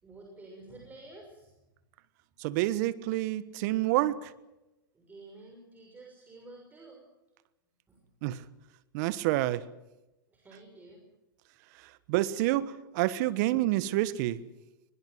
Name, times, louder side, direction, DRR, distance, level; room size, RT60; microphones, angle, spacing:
voice 1, 0.0-1.5 4.9-7.0 7.9-8.0 10.3-11.0, right 2 dB, 15° right, 0 dB, 6.4 m, -50 dB
voice 2, 2.4-4.3 8.2-8.4 8.9-9.6 12.1-14.4, right 16 dB, 55° right, 17 dB, 1.3 m, -28 dB
22.0 x 21.5 x 7.8 m, 0.99 s
hypercardioid pair, 115°, 12 cm